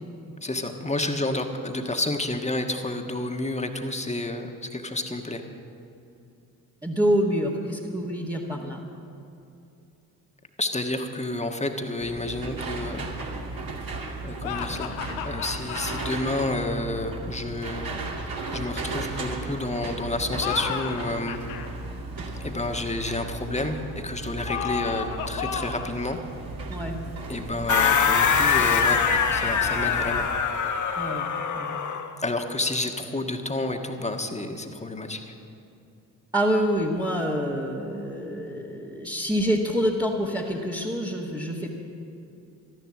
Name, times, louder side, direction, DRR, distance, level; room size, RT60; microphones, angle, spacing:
voice 1, 0.4-5.4 10.6-13.0 14.2-14.9 15.2-17.8 18.5-21.4 22.4-26.2 27.3-29.0 29.3-30.3 32.2-35.3, left 2 dB, 15° left, 5 dB, 1.5 m, -30 dB
voice 2, 6.8-8.8 26.7-27.0 31.0-31.3 31.5-31.8 36.3-41.8, equal, 10° right, -4 dB, 1.7 m, -26 dB
sound 1, 12.0-30.3, right 3 dB, 45° right, 2.2 m, -35 dB
sound 2, 14.4-16.1 20.2-21.7 24.4-25.9, left 8 dB, 80° left, 0.9 m, -33 dB
sound 3, 27.7-32.1, left 6 dB, 40° left, 1.1 m, -23 dB
13.0 x 11.0 x 7.6 m, 2.7 s
hypercardioid pair, 40°, 47 cm